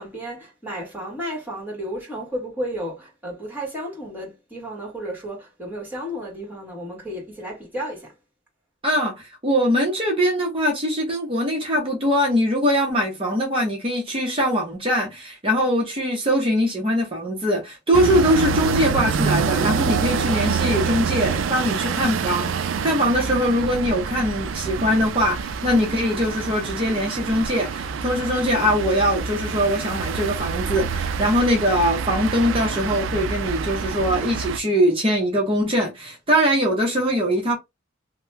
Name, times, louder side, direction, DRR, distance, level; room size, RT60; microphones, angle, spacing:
voice 1, 0.0-8.1, equal, 10° right, 1.6 m, -33 dB
voice 2, 8.8-37.6, equal, 30° right, 0.8 m, -22 dB
sound 1, 17.9-34.6, right 5 dB, 80° right, 0.4 m, -26 dB
2.9 x 2.2 x 3.2 m
head